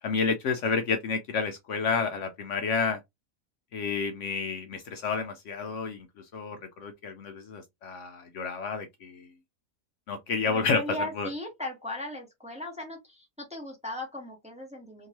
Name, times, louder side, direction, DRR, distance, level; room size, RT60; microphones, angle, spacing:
voice 1, 0.0-3.0 3.7-9.3 10.1-11.3, left 5 dB, 65° left, 0.8 m, -30 dB
voice 2, 10.5-15.1, left 1 dB, 5° right, 0.9 m, -37 dB
2.9 x 2.7 x 2.9 m
omnidirectional pair, 1.5 m